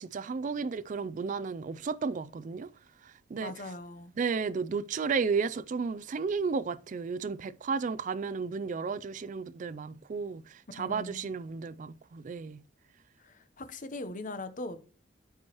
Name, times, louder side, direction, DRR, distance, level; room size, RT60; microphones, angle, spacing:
voice 1, 0.0-2.7 3.3-3.5 4.2-12.6, right 5 dB, 40° right, 0.3 m, -33 dB
voice 2, 3.4-4.1 10.8-11.2 13.2-14.9, left 2 dB, 40° left, 0.8 m, -40 dB
13.5 x 4.6 x 3.0 m
head